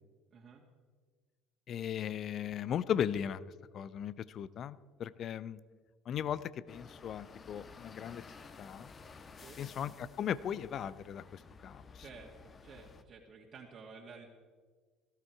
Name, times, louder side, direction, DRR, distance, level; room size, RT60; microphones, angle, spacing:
voice 1, 0.3-0.6 9.4-9.6 12.0-14.3, right 5 dB, 45° right, -1 dB, 2.1 m, -52 dB
voice 2, 1.7-3.4 3.7-5.6 6.1-8.2 8.6-8.9 9.6-12.0, left 9 dB, 50° left, 17 dB, 0.7 m, -37 dB
sound 1, 6.7-13.0, left 4 dB, 35° left, 1.4 m, -54 dB
17.5 x 15.0 x 4.8 m, 1.5 s
hypercardioid pair, 60°, 0 cm